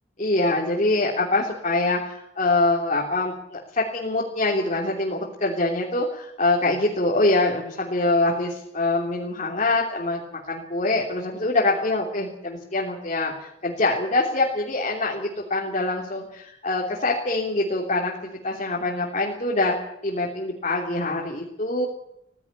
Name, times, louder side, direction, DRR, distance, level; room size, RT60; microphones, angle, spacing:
voice 1, 0.2-10.2 10.5-19.7 20.0-21.9, left 2 dB, 45° left, -2 dB, 3.3 m, -24 dB
17.0 x 16.5 x 9.8 m, 0.81 s
head